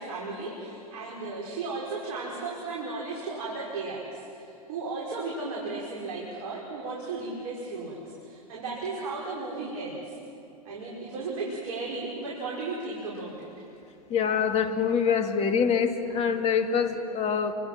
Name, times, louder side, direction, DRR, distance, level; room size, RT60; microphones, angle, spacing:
voice 1, 0.0-10.2 10.6-13.5, right 3 dB, 70° right, -4 dB, 5.5 m, -35 dB
voice 2, 14.1-17.5, left 6 dB, 35° left, 5 dB, 2.5 m, -25 dB
29.0 x 26.0 x 6.0 m, 2.7 s
hypercardioid pair, 105°, 19 cm